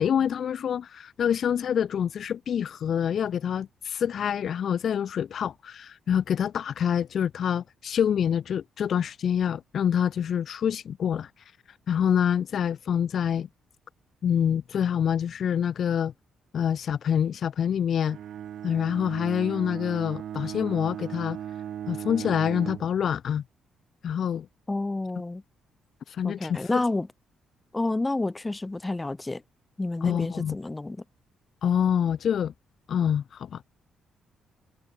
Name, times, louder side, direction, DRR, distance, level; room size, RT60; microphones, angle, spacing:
voice 1, 0.0-11.3 11.9-13.5 14.2-16.1 16.5-18.2 18.6-21.4 21.9-23.4 24.0-24.5 26.1-26.8 30.0-30.5 31.6-32.5 32.9-33.6, left 8 dB, 60° left, 0.6 m, -26 dB
Bowed string instrument, 18.1-23.0, right 10 dB, 70° right, 0.7 m, -37 dB
voice 2, 24.7-25.4 26.2-27.1 27.7-29.4 29.8-31.0, left 2 dB, 15° left, 2.0 m, -29 dB
cardioid pair, 90°, 0 cm